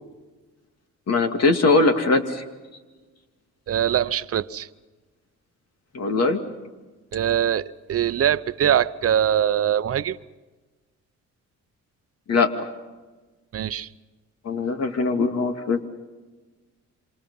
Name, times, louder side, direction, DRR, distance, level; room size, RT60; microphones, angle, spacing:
voice 1, 1.1-2.4 5.9-6.4 12.3-12.7 14.4-15.8, left 3 dB, 55° left, 6 dB, 2.5 m, -21 dB
voice 2, 3.7-4.7 7.1-10.2 13.5-13.9, right 10 dB, 50° right, 15 dB, 0.9 m, -22 dB
27.5 x 26.5 x 5.6 m, 1.3 s
cardioid pair, 90°, 30 cm